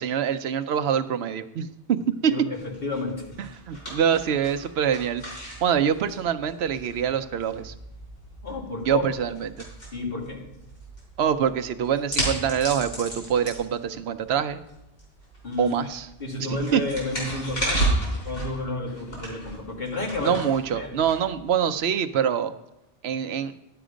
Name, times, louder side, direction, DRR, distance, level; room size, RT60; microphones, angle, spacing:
voice 1, 0.0-2.0 2.2-2.3 3.4-5.2 5.6-7.7 8.8-9.6 11.2-14.6 15.6-16.1 16.4-16.8 20.2-22.5 23.0-23.5, right 8 dB, 85° right, 9 dB, 0.9 m, -25 dB
sound 1, 2.5-21.8, right 1 dB, 75° left, 4.6 m, -34 dB
voice 2, 2.8-3.4 8.4-9.0 9.9-10.4 15.4-15.8 16.2-17.9 18.2-20.4 20.7-21.0, left 3 dB, 60° left, -1 dB, 2.3 m, -31 dB
11.5 x 7.8 x 5.0 m, 0.91 s
omnidirectional pair, 1.0 m